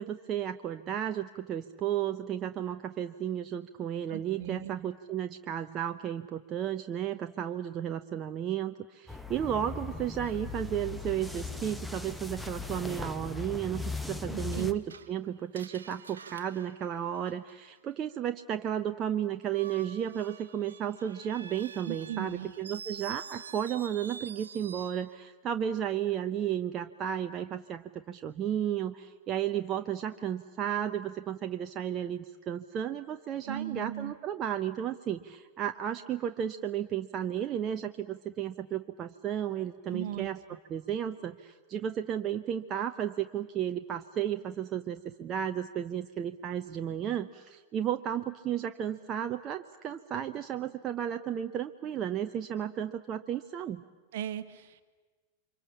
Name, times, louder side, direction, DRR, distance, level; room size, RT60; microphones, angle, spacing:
voice 1, 0.0-40.4 40.7-53.8, right 10 dB, 30° right, 7 dB, 0.8 m, -33 dB
voice 2, 4.1-4.7 14.3-14.7 21.8-22.5 33.4-34.1 39.9-40.3 54.1-54.8, right 10 dB, 55° right, 12 dB, 1.4 m, -37 dB
sound 1, 9.1-14.7, left 4 dB, 5° left, 1.2 m, -38 dB
Screech, 14.9-17.8 19.4-25.1, right 6 dB, 70° right, 1.1 m, -47 dB
29.0 x 25.0 x 7.3 m, 1.3 s
figure-of-eight pair, 90°, 0 cm